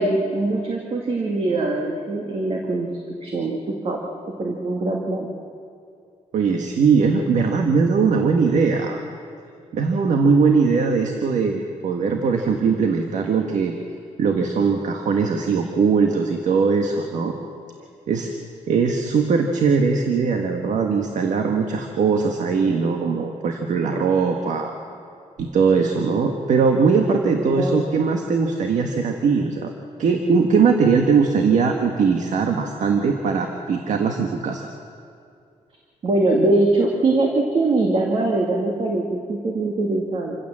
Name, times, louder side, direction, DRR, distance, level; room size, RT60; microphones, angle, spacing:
voice 1, 0.0-2.9 3.2-3.6 3.8-4.0 4.4-5.3 27.6-27.9 36.0-40.4, right 2 dB, 45° right, 0 dB, 2.1 m, -22 dB
voice 2, 6.3-9.0 9.7-13.8 14.2-17.3 18.1-18.3 18.7-24.7 25.4-29.7 30.0-34.6, right 5 dB, 70° right, 4 dB, 1.6 m, -20 dB
27.0 x 16.0 x 7.5 m, 2.5 s
wide cardioid pair, 150°, 13 cm